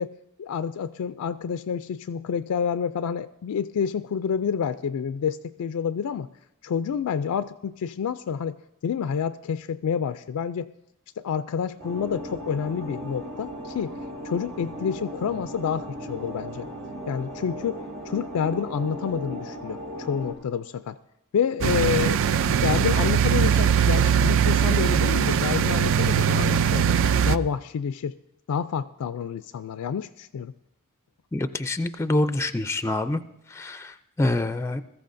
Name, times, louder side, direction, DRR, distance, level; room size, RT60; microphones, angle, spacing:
voice 1, 0.0-6.3 6.6-10.7 11.2-14.0 14.2-16.7 17.1-21.0 21.3-22.2 22.5-27.0 27.3-28.2 28.5-30.5, left 7 dB, 85° left, 11 dB, 0.4 m, -28 dB
sound 1, 11.8-20.3, equal, 80° right, 6.4 m, -37 dB
sound 2, 21.6-27.4, right 8 dB, 60° right, 0.4 m, -21 dB
voice 2, 31.3-33.2 33.5-34.8, left 2 dB, 10° left, 10 dB, 0.4 m, -26 dB
21.0 x 14.0 x 2.6 m, 0.88 s
head